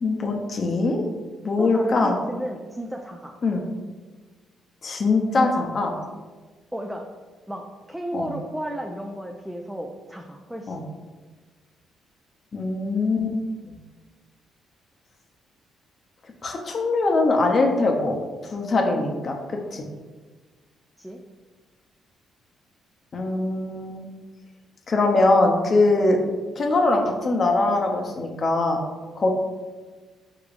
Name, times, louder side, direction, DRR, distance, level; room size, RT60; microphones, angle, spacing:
voice 1, 0.0-1.0 1.4-2.2 3.4-3.6 4.8-5.9 8.1-8.3 10.7-10.8 12.5-13.4 13.7-13.8 16.4-18.2 18.4-19.8 23.1-24.1 24.9-26.2 26.6-28.8 29.2-29.3, left 2 dB, 45° left, 2 dB, 0.7 m, -22 dB
voice 2, 1.6-3.4 6.7-7.0 7.5-7.6 7.9-10.8 21.0-21.2, right 1 dB, 5° right, 1 dB, 0.4 m, -33 dB
4.8 x 3.7 x 2.5 m, 1.3 s
cardioid pair, 90°, 0 cm